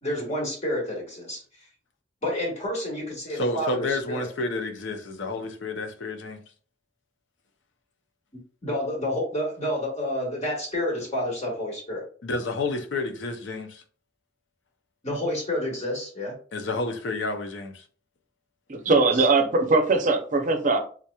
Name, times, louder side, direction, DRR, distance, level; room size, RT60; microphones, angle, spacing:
voice 1, 0.0-1.4 2.2-4.3 8.6-12.1 15.0-16.3 18.9-19.0, left 1 dB, 35° left, 1.5 m, -29 dB
voice 2, 3.3-6.4 12.2-13.8 16.5-17.8, left 2 dB, 70° left, 0.6 m, -30 dB
voice 3, 18.7-20.8, right 3 dB, 45° right, 0.6 m, -21 dB
3.7 x 2.9 x 2.3 m
head